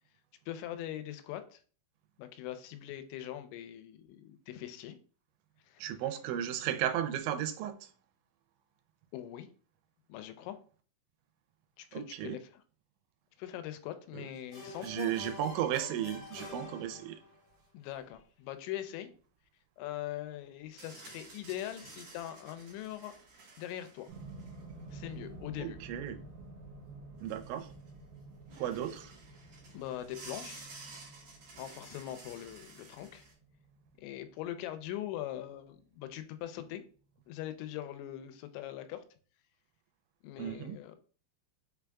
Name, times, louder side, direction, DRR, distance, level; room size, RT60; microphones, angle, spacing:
voice 1, 0.5-1.6 2.2-5.0 5.7-5.9 9.1-9.5 10.1-10.6 11.8-12.6 13.4-15.1 17.7-19.1 19.8-23.1 23.6-24.1 24.9-25.8 29.7-30.7 31.6-33.3 34.0-36.8 37.3-39.0 40.2-41.0, left 12 dB, 90° left, 2.9 m, -42 dB
voice 2, 5.8-7.9 11.9-12.4 14.1-14.2 14.8-17.2 25.6-26.2 27.2-27.7 28.6-29.1 40.4-40.8, right 11 dB, 85° right, 2.9 m, -34 dB
sound 1, 14.2-16.7 17.3-17.4 20.7-25.1 26.7-26.8 27.0-28.0 28.5-33.3, right 3 dB, 55° right, 1.8 m, -53 dB
sound 2, 14.5-17.5, left 3 dB, 45° left, 3.0 m, -47 dB
sound 3, 24.1-36.2 37.2-37.3, right 3 dB, 70° right, 2.7 m, -51 dB
6.4 x 3.5 x 2.3 m
omnidirectional pair, 5.1 m